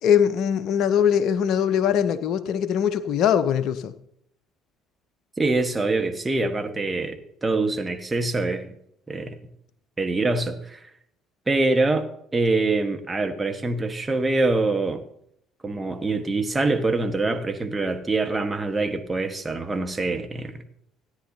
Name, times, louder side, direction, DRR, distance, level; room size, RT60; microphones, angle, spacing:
voice 1, 0.0-3.9, left 8 dB, 55° left, 14 dB, 0.7 m, -21 dB
voice 2, 5.4-8.7 9.1-9.4 10.0-10.9 11.5-15.0 15.6-20.6, right 3 dB, 20° right, 6 dB, 1.4 m, -25 dB
17.0 x 9.8 x 2.8 m, 0.71 s
figure-of-eight pair, 50°, 0 cm